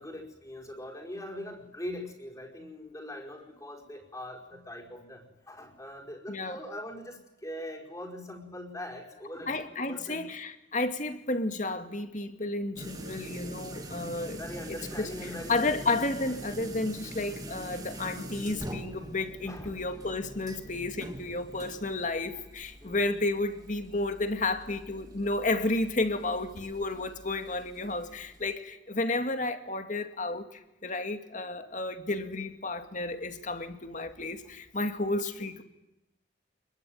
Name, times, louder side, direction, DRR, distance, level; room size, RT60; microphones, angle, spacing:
voice 1, 0.0-10.3 14.3-15.9 19.5-20.0 22.8-23.0, left 1 dB, 20° left, 5.0 m, -42 dB
voice 2, 6.3-6.6 9.5-14.4 14.7-35.6, left 2 dB, 45° left, 2.4 m, -32 dB
sound 1, 12.8-28.5, right 1 dB, 20° right, 2.7 m, -44 dB
26.5 x 22.0 x 9.4 m
head